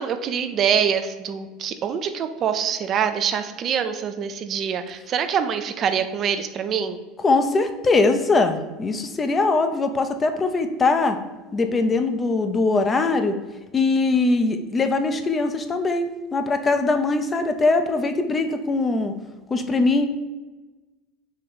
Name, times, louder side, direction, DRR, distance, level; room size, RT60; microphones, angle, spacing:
voice 1, 0.0-7.0, right 7 dB, 40° right, 9 dB, 0.4 m, -25 dB
voice 2, 7.2-11.2 11.5-13.4 13.7-19.1 19.5-20.1, left 3 dB, 25° left, 7 dB, 0.5 m, -21 dB
3.9 x 3.0 x 4.3 m, 1.2 s
supercardioid pair, 115°, 0 cm